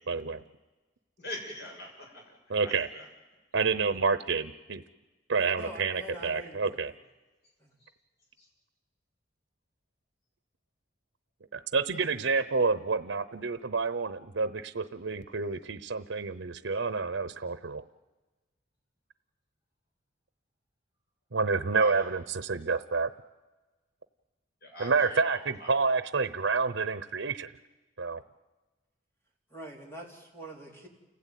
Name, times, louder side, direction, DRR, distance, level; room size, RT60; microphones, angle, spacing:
voice 1, 0.1-0.4 2.5-2.9 3.5-4.8 5.3-6.9 11.5-17.8 21.3-23.1 24.8-27.5 28.0-28.2, right 4 dB, 85° right, 12 dB, 0.8 m, -29 dB
voice 2, 1.2-2.4 2.6-3.1 8.4-8.5 21.7-22.2 24.6-25.8, left 1 dB, 60° left, 1 dB, 7.2 m, -42 dB
voice 3, 5.6-6.9 7.6-7.7 29.5-30.9, equal, 15° left, 0 dB, 4.1 m, -44 dB
29.5 x 16.5 x 9.3 m, 1.2 s
head